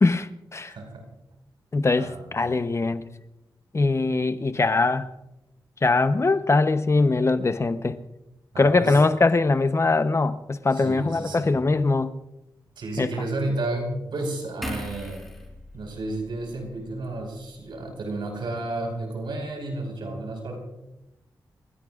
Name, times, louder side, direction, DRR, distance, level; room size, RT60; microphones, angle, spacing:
voice 1, 0.0-0.7 1.7-3.0 3.7-5.1 5.8-8.0 8.6-12.1 13.0-13.1, left 3 dB, 35° left, 0.9 m, -22 dB
voice 2, 0.7-1.0 2.0-2.3 8.5-9.0 10.7-11.5 12.8-15.2 15.7-20.6, right 2 dB, 80° right, 5.2 m, -32 dB
sound 1, 14.6-18.0 18.3-18.5, left 1 dB, ahead, 4.3 m, -41 dB
29.0 x 16.0 x 2.5 m
cardioid pair, 75°, 8 cm